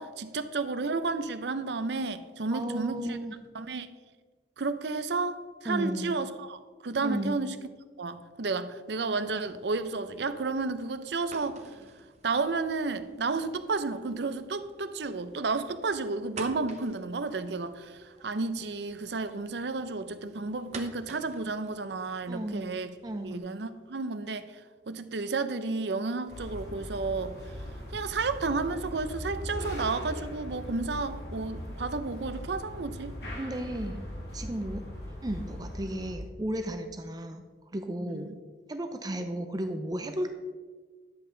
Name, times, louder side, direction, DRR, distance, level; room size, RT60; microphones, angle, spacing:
voice 1, 0.0-3.2 3.5-3.9 4.6-7.6 8.0-11.7 12.2-22.9 23.2-27.4 27.9-33.2 38.0-38.4, right 3 dB, 70° right, 0.6 m, -32 dB
voice 2, 2.5-3.3 5.7-6.2 7.0-7.4 22.3-22.7 23.0-23.4 33.4-34.1 34.3-34.8 35.2-37.4 37.7-38.3 38.7-40.3, right 1 dB, 20° right, 0.6 m, -34 dB
sound 1, 9.2-23.4, right 3 dB, 40° right, 0.9 m, -51 dB
sound 2, 26.3-36.2, equal, 60° left, 2.5 m, -40 dB
11.0 x 7.7 x 3.9 m
head